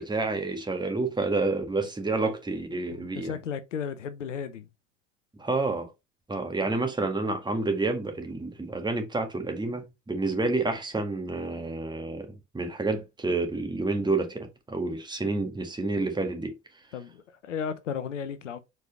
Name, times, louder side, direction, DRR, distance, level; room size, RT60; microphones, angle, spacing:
voice 1, 0.0-3.4 5.4-5.9 6.3-16.5, right 3 dB, 10° right, 1.8 m, -29 dB
voice 2, 2.9-4.7 16.9-18.6, left 7 dB, 80° left, 0.8 m, -34 dB
4.8 x 4.7 x 4.2 m
figure-of-eight pair, 70°, 36 cm